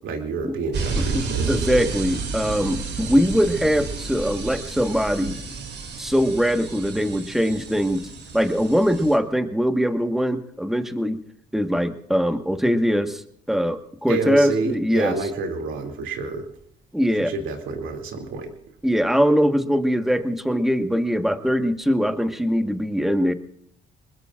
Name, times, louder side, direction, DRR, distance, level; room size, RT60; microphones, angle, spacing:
voice 1, 0.0-2.0 14.1-16.5 17.2-18.5, right 4 dB, 85° right, 4 dB, 2.7 m, -29 dB
sound 1, 0.7-9.2, right 4 dB, 60° right, 2.6 m, -31 dB
voice 2, 1.1-5.4 6.0-8.1 8.3-11.2 11.5-13.2 13.5-15.1 16.9-17.3 18.8-23.3, equal, ahead, 6 dB, 1.4 m, -22 dB
25.5 x 21.0 x 2.5 m, 0.69 s
cardioid pair, 90°, 20 cm